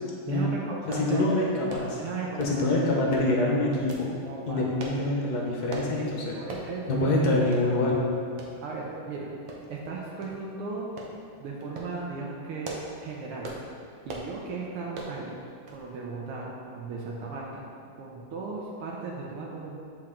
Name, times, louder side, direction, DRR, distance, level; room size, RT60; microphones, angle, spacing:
voice 1, 0.3-1.3 2.0-2.7 4.2-4.7 6.3-7.1 8.6-9.3 9.7-10.9 11.4-12.7 13.0-13.5 14.1-15.4 15.7-17.6 18.0-19.8, right 4 dB, 85° right, -3 dB, 1.7 m, -36 dB
voice 2, 0.9-2.0 2.4-4.1 4.5-6.4 6.9-8.0, left 2 dB, 55° left, -2 dB, 1.2 m, -25 dB
sound 1, 0.9-1.1 1.7-1.9 2.4-2.7 3.1-3.3 3.9-4.1 4.8-5.0 5.7-5.9 6.5-6.7 7.1-7.2 7.5-7.7 8.4-8.5 9.5-9.9 10.2-10.4 11.0-11.1 11.6-11.9 12.4-13.0 13.4-13.7 14.1-14.3 14.9-15.2 15.7-15.9 16.1-16.2, right 3 dB, 65° right, 1.4 m, -39 dB
7.8 x 4.5 x 3.7 m, 2.3 s
omnidirectional pair, 2.4 m